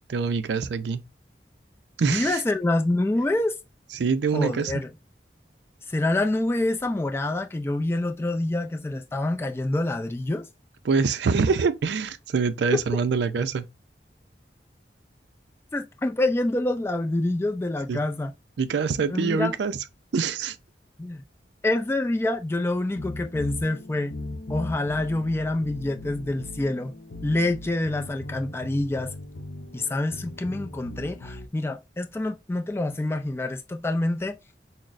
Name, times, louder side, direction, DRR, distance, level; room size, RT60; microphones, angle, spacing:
voice 1, 0.1-1.0 2.0-2.4 3.9-4.7 10.9-13.7 17.9-18.0 18.6-19.8 20.1-20.6, right 5 dB, 75° right, 0.4 m, -25 dB
voice 2, 2.1-3.6 4.3-4.9 5.9-10.4 12.7-12.8 15.7-18.3 19.1-19.6 21.0-21.2 21.6-24.2 24.5-26.9 27.2-29.1 29.7-34.5, left 2 dB, 15° left, 0.3 m, -26 dB
sound 1, 22.9-31.5, left 2 dB, 65° left, 0.6 m, -38 dB
6.0 x 2.0 x 2.5 m
head